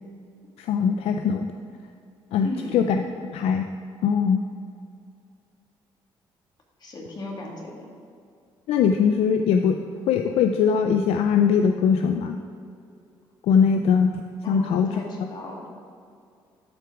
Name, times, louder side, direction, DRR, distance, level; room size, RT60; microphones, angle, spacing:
voice 1, 0.6-1.5 2.3-3.0 3.3-3.7 4.0-4.4 8.7-9.8 10.1-12.4 13.4-14.1 14.5-15.0, left 6 dB, 80° left, 6 dB, 0.4 m, -21 dB
voice 2, 2.4-2.8 6.8-7.9 14.4-15.7, left 2 dB, 45° left, -1 dB, 2.1 m, -35 dB
13.0 x 4.6 x 4.9 m, 2.4 s
cardioid pair, 80°, 10 cm